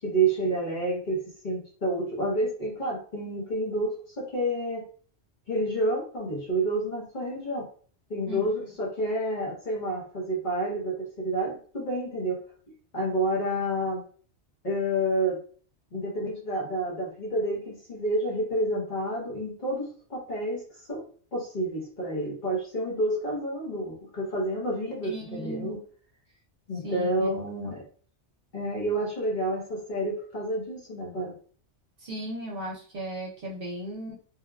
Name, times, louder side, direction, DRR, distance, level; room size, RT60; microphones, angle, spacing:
voice 1, 0.0-4.8 5.5-7.7 8.1-12.4 12.9-14.0 14.6-15.4 15.9-21.0 21.3-25.8 26.7-27.8 28.5-31.4, right 1 dB, 45° left, -3 dB, 0.9 m, -29 dB
voice 2, 25.0-25.8 26.8-27.3 32.0-34.1, equal, 55° right, -2 dB, 0.8 m, -36 dB
3.2 x 2.1 x 2.2 m, 0.44 s
omnidirectional pair, 1.2 m